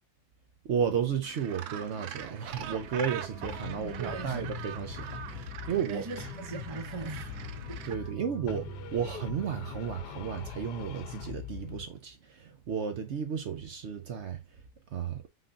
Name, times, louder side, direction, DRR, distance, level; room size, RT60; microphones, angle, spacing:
voice 1, 0.6-6.0 7.9-8.7 8.9-14.4 14.9-15.2, right 7 dB, 60° right, 0.8 m, -33 dB
Gull seagull, 1.2-7.9, right 9 dB, 75° right, 1.1 m, -43 dB
sound 1, 2.5-10.5, right 3 dB, 25° right, 2.4 m, -46 dB
sound 2, 3.4-5.9 6.2-8.2 8.5-11.9, left 11 dB, 85° left, 1.2 m, -43 dB
voice 2, 3.8-4.5 5.9-7.3 7.9-8.0, right 5 dB, 45° right, 0.4 m, -40 dB
5.6 x 3.8 x 2.4 m
omnidirectional pair, 1.7 m